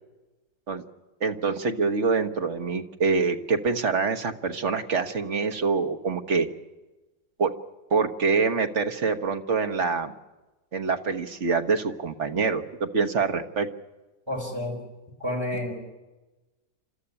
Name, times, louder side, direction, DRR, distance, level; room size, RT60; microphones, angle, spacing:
voice 1, 1.2-6.5 7.4-7.5 7.9-10.1 10.7-13.7, right 4 dB, 45° right, 7 dB, 1.4 m, -25 dB
voice 2, 14.3-14.8 15.2-15.9, left 1 dB, 15° right, -1 dB, 5.1 m, -30 dB
29.0 x 13.5 x 9.9 m, 1.1 s
omnidirectional pair, 2.0 m